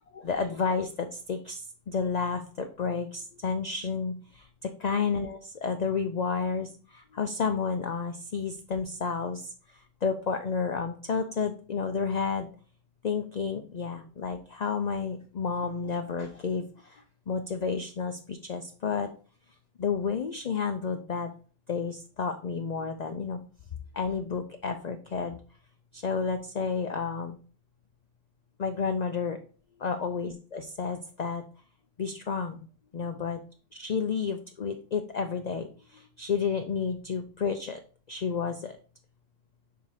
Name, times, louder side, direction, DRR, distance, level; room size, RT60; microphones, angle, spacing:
voice 1, 0.0-12.5 13.0-19.1 19.8-21.3 21.7-23.4 23.9-25.4 25.9-27.4 28.6-29.4 29.8-31.4 32.0-32.7 32.9-33.4 33.7-37.8 38.1-38.8, left 5 dB, 55° left, 7 dB, 0.5 m, -31 dB
5.4 x 4.6 x 4.8 m, 0.39 s
omnidirectional pair, 1.3 m